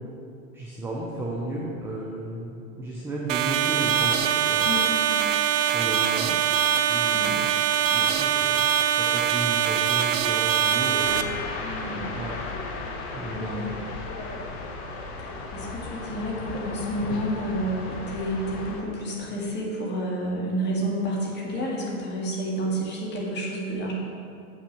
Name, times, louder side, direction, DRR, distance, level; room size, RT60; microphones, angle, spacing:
voice 1, 0.5-4.7 5.7-6.4 6.9-7.6 7.9-12.4 13.1-13.7, right 1 dB, 5° right, -4 dB, 0.4 m, -34 dB
sound 1, 3.3-11.2, right 9 dB, 60° right, 0.6 m, -23 dB
voice 2, 4.6-5.3 7.1-7.5 11.6-12.0 13.3-13.8 15.5-23.9, right 1 dB, 25° left, -3 dB, 1.8 m, -30 dB
sound 2, 11.0-18.8, left 3 dB, 45° left, 1.2 m, -35 dB
7.1 x 6.0 x 5.7 m, 2.6 s
hypercardioid pair, 135°, 44 cm